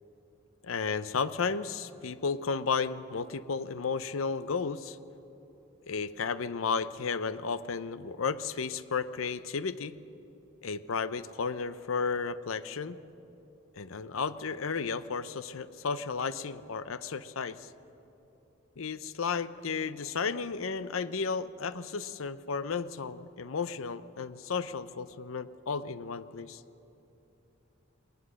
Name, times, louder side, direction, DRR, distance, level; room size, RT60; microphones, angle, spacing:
voice 1, 0.6-5.0 5.9-9.9 10.6-13.0 13.8-17.7 18.8-26.6, left 5 dB, 85° left, 15 dB, 0.7 m, -33 dB
21.0 x 19.5 x 6.4 m, 2.9 s
head